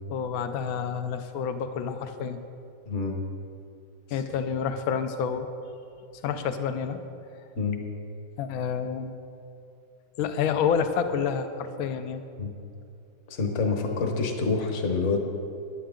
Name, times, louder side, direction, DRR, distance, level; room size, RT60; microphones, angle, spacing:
voice 1, 0.1-2.4 4.1-5.5 6.2-7.0 8.4-9.1 10.2-12.2, left 7 dB, 60° left, 9 dB, 1.0 m, -28 dB
voice 2, 2.8-3.2 4.1-4.2 7.6-7.8 12.4-12.5 13.3-15.2, left 4 dB, 45° left, 3 dB, 1.3 m, -27 dB
15.0 x 10.5 x 3.8 m, 2.6 s
omnidirectional pair, 2.0 m